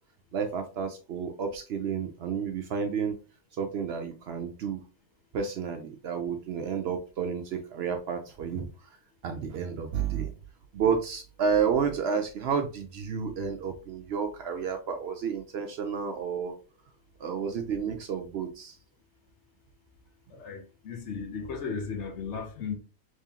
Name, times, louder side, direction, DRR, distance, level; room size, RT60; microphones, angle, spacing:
voice 1, 0.3-3.2 3.6-4.8 5.3-9.0 9.2-10.3 10.7-16.6 17.2-18.8, right 6 dB, 65° right, 0.7 m, -31 dB
voice 2, 20.3-22.8, left 5 dB, 65° left, 1.0 m, -35 dB
3.6 x 3.0 x 2.8 m
omnidirectional pair, 1.4 m